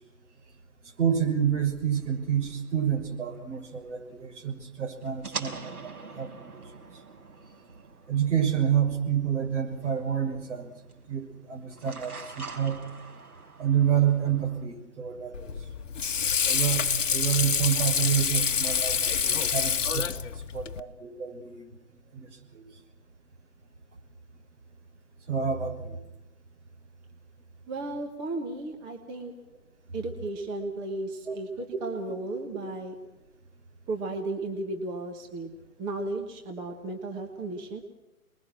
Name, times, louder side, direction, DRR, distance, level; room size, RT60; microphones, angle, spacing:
voice 1, 1.0-6.5 8.1-10.7 11.1-12.8 13.6-15.5 16.4-20.2 20.5-21.7 22.1-22.3 22.5-22.6 25.3-26.0 31.3-31.4, right 8 dB, 50° right, 2 dB, 6.6 m, -28 dB
sound 1, 1.9-14.6, right 4 dB, 80° right, 5.4 m, -45 dB
Water / Sink (filling or washing), 15.3-20.8, left 7 dB, 55° left, 1.4 m, -27 dB
voice 2, 27.7-29.3 29.9-32.9 33.9-37.8, right 2 dB, 10° right, 3 dB, 1.2 m, -34 dB
29.0 x 21.5 x 6.2 m, 0.98 s
hypercardioid pair, 155°, 44 cm